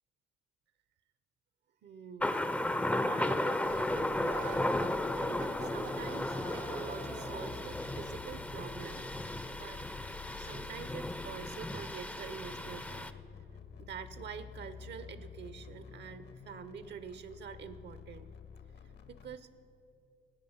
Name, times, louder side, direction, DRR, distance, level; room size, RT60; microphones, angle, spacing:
voice 1, 1.8-2.3 2.8-4.7 5.1-9.1 9.5-9.8 10.4-13.1 13.8-18.3 19.1-19.5, right 7 dB, 60° right, 12 dB, 0.6 m, -46 dB
Thunder, 2.2-13.1, left 1 dB, 5° left, 0.4 m, -35 dB
sound 1, 3.6-19.4, left 6 dB, 60° left, 0.9 m, -50 dB
sound 2, 4.2-7.8, right 6 dB, 75° right, 1.2 m, -47 dB
13.5 x 8.6 x 5.6 m, 2.6 s
cardioid pair, 90°, 20 cm